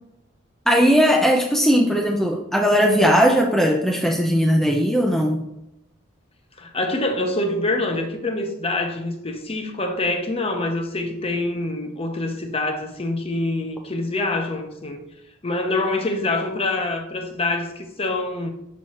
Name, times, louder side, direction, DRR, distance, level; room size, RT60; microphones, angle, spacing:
voice 1, 0.7-5.4, equal, ahead, 0.5 m, -18 dB
voice 2, 6.6-15.0 15.4-18.5, left 2 dB, 30° left, 0.8 m, -25 dB
6.3 x 5.9 x 2.9 m
head